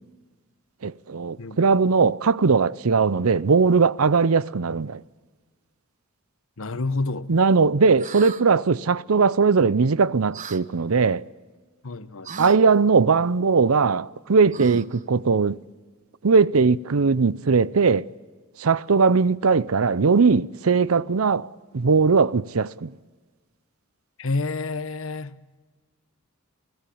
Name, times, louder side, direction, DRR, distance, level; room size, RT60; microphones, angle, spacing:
voice 1, 0.8-5.0 7.3-11.2 12.4-15.6 16.2-18.1 18.6-21.5 21.7-22.9, right 5 dB, 80° right, 0.7 m, -19 dB
voice 2, 6.6-7.3 11.8-12.5 24.2-25.4, left 3 dB, 70° left, 1.1 m, -29 dB
sound 1, 8.0-8.4 10.3-10.6 12.2-12.6 14.5-15.0, right 5 dB, 35° right, 0.9 m, -36 dB
28.5 x 17.0 x 8.7 m
head